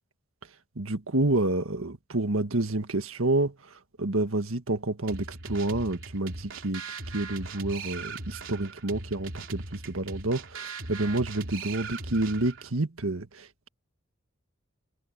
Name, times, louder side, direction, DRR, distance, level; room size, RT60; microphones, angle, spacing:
voice 1, 0.8-3.5 4.0-6.8 7.1-13.5, right 2 dB, 85° right, 1.6 m, -29 dB
sound 1, 5.1-12.7, right 3 dB, 65° right, 3.4 m, -39 dB
head